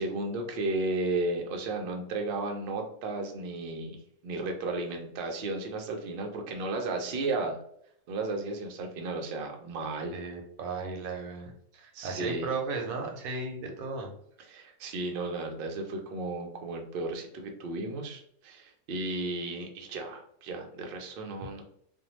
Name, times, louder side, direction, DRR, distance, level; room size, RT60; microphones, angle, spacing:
voice 1, 0.0-7.6 8.1-10.2 11.9-12.5 14.4-21.7, right 2 dB, 60° right, 2 dB, 0.6 m, -34 dB
voice 2, 10.1-14.1, right 4 dB, 80° right, 2 dB, 1.1 m, -35 dB
2.6 x 2.1 x 2.9 m, 0.69 s
omnidirectional pair, 1.5 m